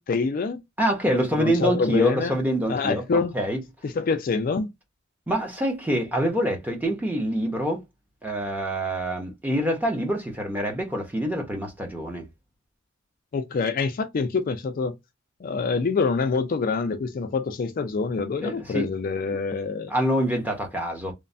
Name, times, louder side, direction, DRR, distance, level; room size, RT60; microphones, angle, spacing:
voice 1, 0.0-0.6 1.1-2.4 2.7-3.3 3.8-4.7 13.3-15.0 15.4-19.9, left 4 dB, 40° left, 0.3 m, -26 dB
voice 2, 0.8-3.6 5.3-7.8 8.2-12.3 18.4-18.9 19.9-21.1, equal, 10° right, 0.6 m, -26 dB
3.1 x 2.0 x 2.5 m
head